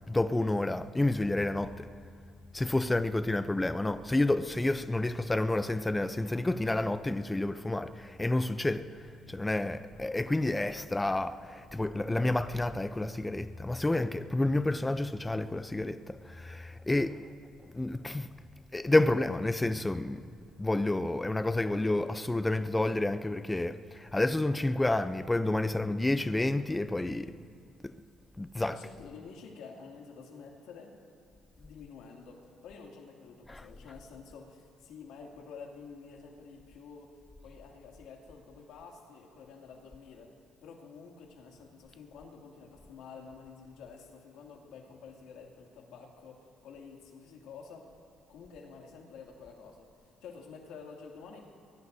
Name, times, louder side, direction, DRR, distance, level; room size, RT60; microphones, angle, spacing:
voice 1, 0.1-1.9 2.5-17.3 17.7-18.3 18.7-20.3 20.6-27.3 28.4-28.8 33.5-33.6, left 2 dB, 15° left, 0.5 m, -29 dB
voice 2, 28.7-31.0 31.6-40.3 40.6-47.9 48.3-51.5, left 5 dB, 80° left, 2.4 m, -49 dB
23.0 x 20.0 x 2.7 m
cardioid pair, 90°, 0 cm